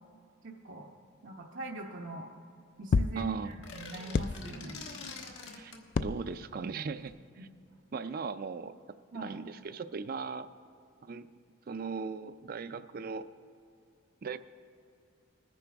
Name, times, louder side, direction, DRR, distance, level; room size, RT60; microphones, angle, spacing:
voice 1, 0.4-0.9 1.2-2.3 2.8-4.8 7.4-7.5 9.1-9.3, right 2 dB, 80° right, -3 dB, 0.9 m, -42 dB
sound 1, 2.9-3.2 4.1-4.7 5.9-6.6 7.1-7.2, left 4 dB, 45° left, 0.3 m, -30 dB
voice 2, 3.2-3.5 5.5-7.5 7.9-8.7 9.1-10.5 11.0-11.3 11.7-13.3 14.2-14.4, right 5 dB, 50° right, 12 dB, 0.4 m, -38 dB
sound 2, 3.5-5.8, left 4 dB, 80° left, 1.6 m, -45 dB
20.5 x 9.9 x 3.5 m, 2.4 s
head